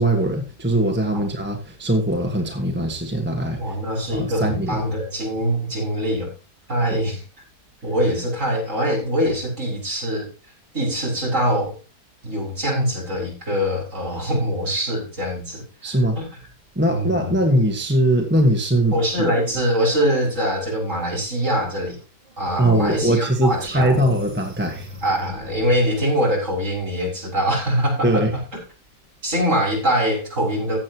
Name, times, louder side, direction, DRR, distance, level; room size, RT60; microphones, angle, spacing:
voice 1, 0.0-3.8 4.1-4.8 6.9-7.0 15.8-16.2 16.7-18.9 22.6-24.9 28.0-28.3, right 1 dB, 5° right, 2 dB, 1.4 m, -21 dB
voice 2, 3.6-6.3 6.7-7.2 7.8-10.3 10.7-11.8 12.2-16.3 16.9-17.4 18.9-22.0 22.4-24.0 25.0-28.2 29.2-30.8, equal, 45° right, -3 dB, 6.4 m, -23 dB
sound 1, 22.3-22.4 22.9-26.0, left 1 dB, 25° right, 1.0 m, -42 dB
15.0 x 8.7 x 3.0 m, 0.32 s
omnidirectional pair, 1.8 m